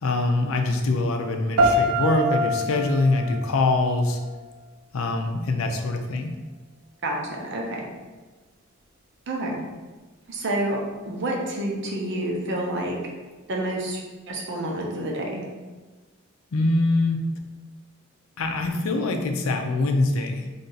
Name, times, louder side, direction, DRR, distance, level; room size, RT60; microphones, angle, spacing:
voice 1, 0.0-4.2 4.9-6.3 16.5-17.2 18.4-20.5, left 2 dB, 90° left, 4 dB, 0.5 m, -23 dB
sound 1, 1.6-4.6, right 1 dB, 90° right, 0.5 m, -25 dB
voice 2, 7.0-7.8 9.3-9.6 10.3-10.8 11.1-13.0 13.5-14.0 14.3-15.4, right 1 dB, 60° right, -1 dB, 0.8 m, -28 dB
3.3 x 2.7 x 3.9 m, 1.3 s
head